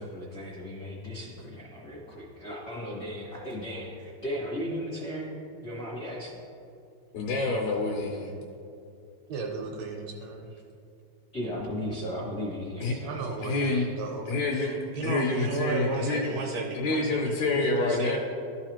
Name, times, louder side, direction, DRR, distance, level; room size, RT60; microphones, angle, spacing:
voice 1, 0.0-6.4 11.3-13.2, equal, 60° left, -6 dB, 1.0 m, -36 dB
voice 2, 7.1-8.3 12.8-12.9 13.4-13.9 14.3-16.2 16.5-18.2, left 3 dB, 75° left, -1 dB, 2.0 m, -28 dB
voice 3, 9.3-10.6 13.0-18.2, right 4 dB, 75° right, 1 dB, 1.7 m, -34 dB
12.5 x 4.9 x 3.0 m, 2.5 s
omnidirectional pair, 3.4 m